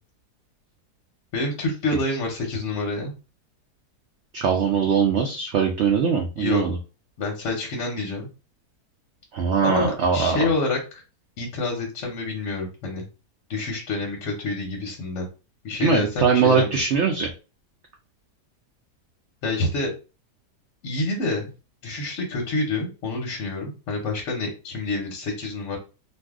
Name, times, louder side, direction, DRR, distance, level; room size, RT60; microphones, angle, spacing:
voice 1, 1.3-3.1 6.4-6.6 7.2-8.3 9.6-11.0 11.4-13.0 13.5-15.3 15.6-16.8 19.4-19.9 20.8-21.5 21.8-25.8, left 3 dB, 55° left, 1 dB, 1.0 m, -27 dB
voice 2, 4.3-6.8 9.3-10.5 15.8-17.3, right 6 dB, 70° right, 2 dB, 0.6 m, -21 dB
2.6 x 2.4 x 3.5 m, 0.31 s
omnidirectional pair, 1.7 m